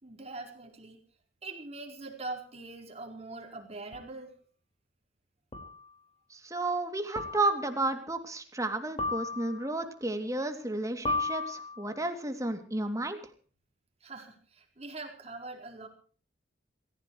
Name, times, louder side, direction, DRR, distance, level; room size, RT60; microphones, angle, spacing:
voice 1, 0.0-1.0 1.4-4.4 14.0-15.9, right 3 dB, 35° right, 3 dB, 4.7 m, -43 dB
sound 1, 3.9-4.0 5.5-5.9 7.2-7.7 9.0-9.8 11.1-12.0, left 2 dB, 30° left, 4.8 m, -34 dB
voice 2, 6.3-13.2, right 2 dB, 20° right, 7 dB, 2.7 m, -32 dB
27.5 x 15.5 x 3.2 m, 0.42 s
head